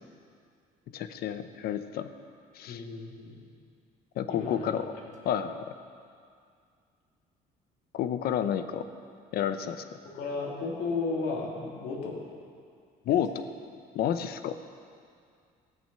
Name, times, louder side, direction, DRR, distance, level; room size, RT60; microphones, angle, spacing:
voice 1, 0.9-2.1 2.5-2.8 4.2-4.9 5.2-5.7 7.9-8.9 9.3-9.9 13.1-13.4 13.9-14.6, left 9 dB, 65° left, 10 dB, 0.8 m, -30 dB
voice 2, 2.7-3.4 4.3-4.7 9.4-9.5 10.0-12.3 13.0-13.2, left 3 dB, 80° left, -2 dB, 2.6 m, -34 dB
14.0 x 8.8 x 6.8 m, 2.3 s
cardioid pair, 110°, 17 cm